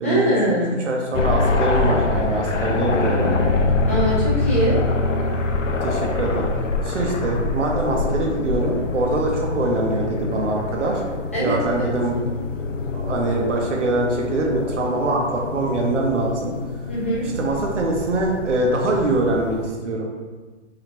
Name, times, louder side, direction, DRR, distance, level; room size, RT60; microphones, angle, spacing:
voice 1, 0.0-0.8 3.9-4.8 11.3-11.8 16.9-17.2, right 1 dB, 10° left, -9 dB, 0.4 m, -22 dB
voice 2, 0.9-3.3 5.8-6.5 6.8-11.0 11.4-12.1 12.9-16.5 17.4-20.1, right 2 dB, 70° right, 0 dB, 0.9 m, -23 dB
sound 1, 1.1-19.7, left 3 dB, 80° left, 0.6 m, -25 dB
5.0 x 2.4 x 2.9 m, 1.3 s
hypercardioid pair, 145°, 37 cm